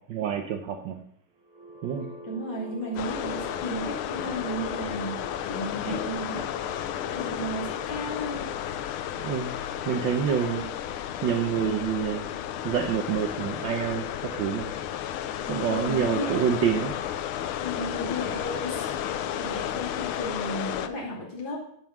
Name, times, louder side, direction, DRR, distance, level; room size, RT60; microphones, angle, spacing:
voice 1, 0.1-1.0 1.8-2.1 5.9-6.0 9.2-9.5 9.8-10.6 11.2-12.3 12.6-14.7 15.5-16.9, right 8 dB, 70° right, 5 dB, 1.4 m, -27 dB
sound 1, 1.4-15.3, right 1 dB, 45° right, 3.1 m, -47 dB
voice 2, 2.2-5.2 5.4-6.4 7.1-8.5 10.1-10.6 11.5-11.9 15.5-16.5 17.6-21.6, equal, 65° left, -2 dB, 3.6 m, -34 dB
sound 2, 3.0-20.9, left 10 dB, 90° left, 1.5 m, -33 dB
13.0 x 5.5 x 6.0 m, 0.66 s
omnidirectional pair, 2.3 m